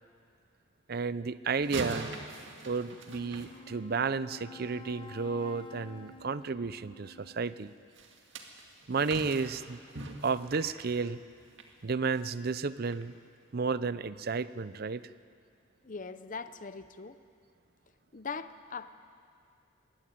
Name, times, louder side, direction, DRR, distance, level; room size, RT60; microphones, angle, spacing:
voice 1, 0.9-2.1 2.7-7.7 8.9-9.8 10.2-11.2 11.8-13.1 13.5-15.0, right 4 dB, 50° right, 16 dB, 0.5 m, -32 dB
sound 1, 1.6-4.2 7.9-11.7 12.1-12.4 12.9-13.0, right 3 dB, 65° right, 2.1 m, -42 dB
Wind instrument woodwind instrument, 3.0-7.9, left 4 dB, 25° left, 1.1 m, -51 dB
voice 2, 15.8-17.2 18.1-18.9, left 5 dB, 40° left, 12 dB, 0.8 m, -41 dB
22.0 x 17.0 x 9.4 m, 2.3 s
head